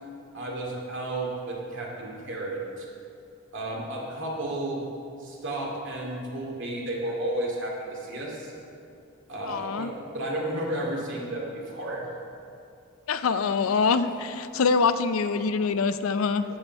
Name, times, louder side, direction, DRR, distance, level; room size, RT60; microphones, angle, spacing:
voice 1, 0.3-2.9 3.5-4.8 5.2-8.5 9.3-12.0, right 1 dB, 65° right, -2 dB, 2.3 m, -32 dB
voice 2, 9.4-9.9 13.1-16.4, left 5 dB, 80° left, 11 dB, 0.5 m, -24 dB
10.5 x 7.9 x 5.4 m, 2.6 s
head